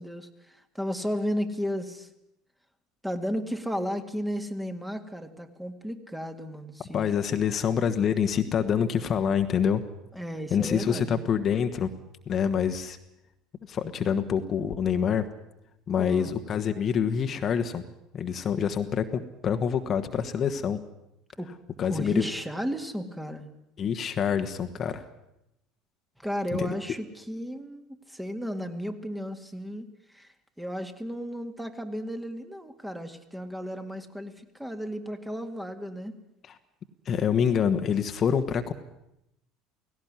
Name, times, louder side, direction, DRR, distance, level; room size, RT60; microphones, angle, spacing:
voice 1, 0.0-2.1 3.0-7.1 10.1-11.2 16.0-16.4 21.4-21.5 21.9-23.5 26.2-36.1, equal, 5° right, 7 dB, 2.1 m, -34 dB
voice 2, 6.9-9.8 10.5-11.9 12.3-13.0 13.7-15.2 15.9-17.8 18.1-20.8 21.8-22.2 23.8-25.1 26.5-26.7 37.0-38.7, left 7 dB, 40° left, 7 dB, 1.4 m, -26 dB
17.5 x 17.5 x 9.7 m, 0.84 s
hypercardioid pair, 65°, 0 cm